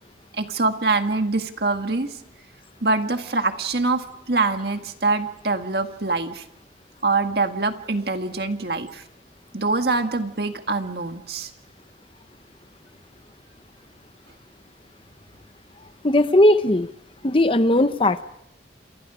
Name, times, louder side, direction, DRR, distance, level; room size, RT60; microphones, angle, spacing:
voice 1, 0.4-2.2 2.8-6.4 7.0-9.0 9.5-11.5, right 3 dB, 60° right, 6 dB, 1.8 m, -24 dB
voice 2, 16.0-16.9 17.2-18.2, left 1 dB, 30° left, 11 dB, 0.9 m, -18 dB
29.5 x 27.0 x 5.0 m, 0.75 s
head